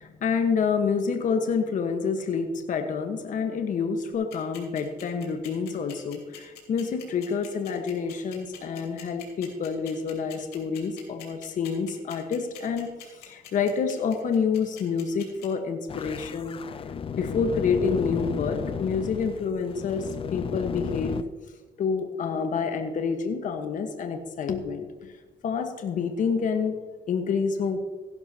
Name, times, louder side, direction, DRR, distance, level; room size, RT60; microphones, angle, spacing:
voice 1, 0.0-12.9 13.1-16.6 17.2-21.2 21.8-25.1 25.4-26.7 27.1-27.8, left 5 dB, 50° left, 5 dB, 1.3 m, -28 dB
sound 1, 4.1-15.5, left 11 dB, 75° left, 3.2 m, -44 dB
sound 2, 15.9-21.2, left 6 dB, 35° left, 0.5 m, -33 dB
16.0 x 11.5 x 2.9 m, 1.3 s
cardioid pair, 110°, 17 cm